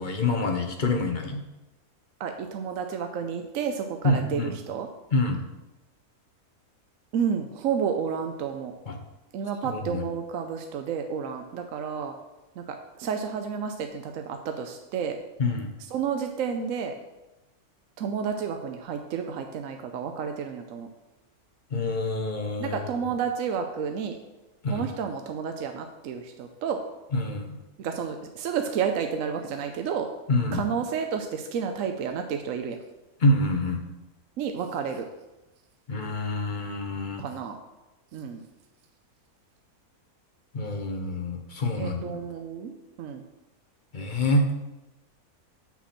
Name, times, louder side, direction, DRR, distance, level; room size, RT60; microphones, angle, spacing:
voice 1, 0.0-1.4 4.0-4.6 5.1-5.4 8.9-9.0 9.6-10.0 15.4-15.7 21.7-22.8 24.6-24.9 27.1-27.6 30.3-30.7 33.2-33.8 35.9-37.2 40.5-42.2 43.9-44.5, left 2 dB, 45° left, 4 dB, 0.7 m, -26 dB
voice 2, 2.2-4.9 7.1-8.7 9.3-12.2 12.6-15.2 15.9-17.0 18.0-20.9 22.6-24.2 24.7-26.8 27.8-30.1 30.5-32.8 34.4-35.1 37.2-37.6 38.1-38.4 41.8-42.7 43.0-43.2, right 7 dB, 70° right, 5 dB, 0.9 m, -31 dB
7.2 x 5.9 x 4.2 m, 1.0 s
omnidirectional pair, 1.6 m